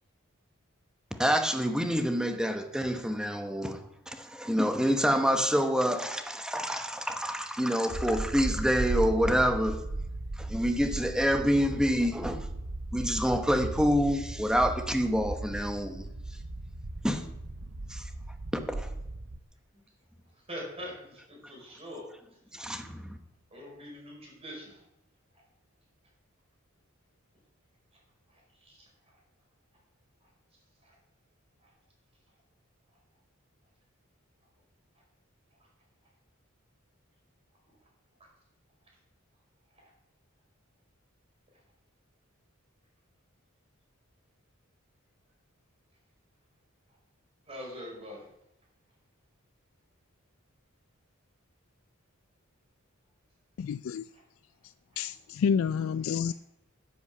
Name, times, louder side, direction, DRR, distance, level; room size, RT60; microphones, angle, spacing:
voice 1, 1.1-9.8 10.4-12.5 12.9-16.1 17.0-17.2 17.9-18.0 18.5-18.9 22.5-23.2, equal, 5° right, 1.0 m, -27 dB
sound 1, 7.9-19.4, right 2 dB, 65° right, 0.9 m, -36 dB
voice 2, 20.2-22.1 23.5-24.8 28.3-28.9 30.2-30.3 30.8-31.0 31.6-31.7 39.8-39.9 47.5-48.3 54.1-54.2 54.9-55.0, equal, 30° right, 5.0 m, -44 dB
voice 3, 53.6-54.1 55.0-56.3, left 6 dB, 70° left, 0.3 m, -29 dB
10.0 x 8.5 x 7.2 m
head